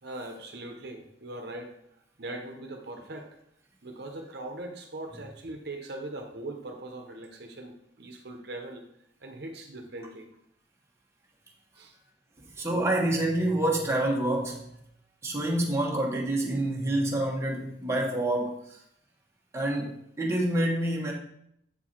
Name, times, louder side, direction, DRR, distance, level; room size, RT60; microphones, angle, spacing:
voice 1, 0.0-1.7 2.2-3.3 3.8-8.9 9.2-10.3 11.8-11.9, right 2 dB, 65° right, 3 dB, 1.0 m, -40 dB
voice 2, 12.6-14.6 15.2-18.6 19.5-21.1, right 1 dB, 15° right, -2 dB, 1.3 m, -27 dB
7.8 x 4.6 x 4.4 m, 0.74 s
head